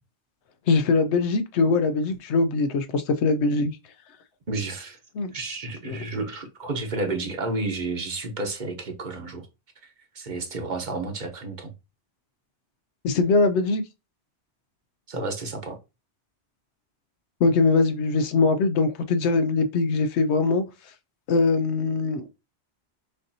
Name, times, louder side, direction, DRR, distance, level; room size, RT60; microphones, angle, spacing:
voice 1, 0.7-3.7 5.2-5.3 5.9-6.0 13.0-13.8 17.4-20.9 21.3-22.3, left 3 dB, 80° left, 0.9 m, -22 dB
voice 2, 4.5-5.0 5.3-9.5 9.8-11.7 15.1-15.8, right 3 dB, 45° right, 1.0 m, -31 dB
6.6 x 2.6 x 2.7 m
omnidirectional pair, 1.1 m